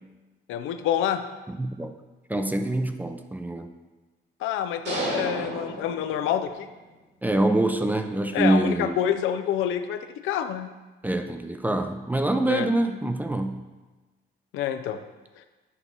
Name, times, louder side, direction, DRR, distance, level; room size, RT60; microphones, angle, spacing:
voice 1, 0.5-1.2 4.4-6.7 8.3-10.7 12.4-12.7 14.5-15.0, left 10 dB, 90° left, 9 dB, 0.5 m, -27 dB
voice 2, 1.5-1.9 2.3-3.7 7.2-9.0 11.0-13.6, right 1 dB, 10° right, 7 dB, 0.5 m, -25 dB
sound 1, 4.8-6.7, right 2 dB, 60° right, 2.1 m, -32 dB
8.2 x 3.0 x 5.4 m, 1.2 s
cardioid pair, 90°, 20 cm